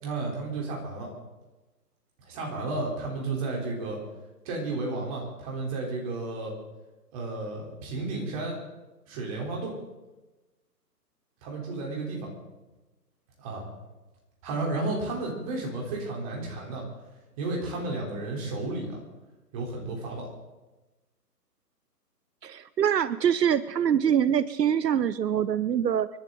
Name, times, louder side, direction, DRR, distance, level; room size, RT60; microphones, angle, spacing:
voice 1, 0.0-1.1 2.2-4.0 4.4-6.5 7.1-8.5 9.1-9.7 11.4-12.3 13.4-13.6 14.4-16.8 17.4-19.0 19.5-20.3, right 2 dB, 20° right, -1 dB, 3.5 m, -32 dB
voice 2, 22.4-26.1, right 9 dB, 80° right, 17 dB, 0.7 m, -24 dB
28.0 x 11.5 x 3.8 m, 1.1 s
hypercardioid pair, 155°, 49 cm